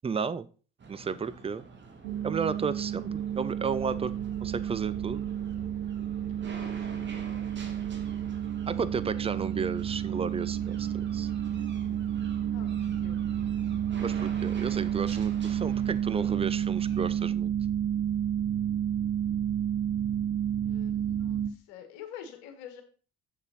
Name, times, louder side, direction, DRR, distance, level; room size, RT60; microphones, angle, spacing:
voice 1, 0.0-0.5 0.9-1.6 2.2-4.1 4.4-5.3 8.7-11.3 14.0-17.5, right 5 dB, 20° right, 15 dB, 0.5 m, -33 dB
sound 1, 0.8-17.3, right 3 dB, 35° right, 1.7 m, -48 dB
voice 2, 0.9-1.4 6.4-7.1 8.8-9.7 12.5-13.5 20.6-22.8, left 9 dB, 65° left, 6 dB, 1.6 m, -49 dB
sound 2, 2.0-21.5, right 10 dB, 70° right, 0.7 m, -31 dB
7.3 x 6.8 x 4.1 m, 0.38 s
figure-of-eight pair, 55°, 33 cm